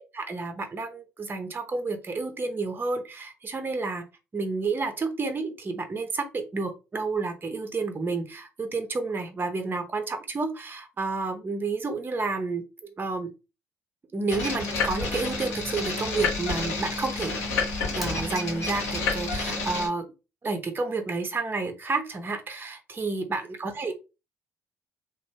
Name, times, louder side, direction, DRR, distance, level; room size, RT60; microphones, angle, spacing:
voice 1, 0.1-4.0 4.3-13.3 14.1-17.3 17.9-20.1 20.4-23.9, right 3 dB, 30° right, 6 dB, 0.7 m, -30 dB
sound 1, 14.3-19.9, left 3 dB, 80° left, 0.9 m, -29 dB
Fire, 17.9-18.9, left 2 dB, ahead, 1.0 m, -39 dB
3.0 x 2.1 x 3.1 m, 0.29 s
hypercardioid pair, 50°, 7 cm